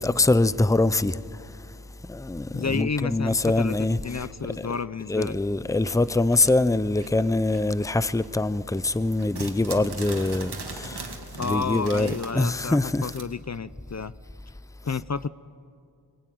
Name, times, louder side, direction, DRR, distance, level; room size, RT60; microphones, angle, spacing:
voice 1, 0.0-1.6 2.0-4.7 5.1-13.1, left 2 dB, 10° left, 0.6 m, -24 dB
voice 2, 2.5-5.3 11.4-14.1 14.8-15.3, left 5 dB, 45° left, 0.6 m, -31 dB
sound 1, 5.8-7.9 8.2-13.2, right 3 dB, 80° right, 2.4 m, -39 dB
25.0 x 21.5 x 9.4 m
wide cardioid pair, 65°, 38 cm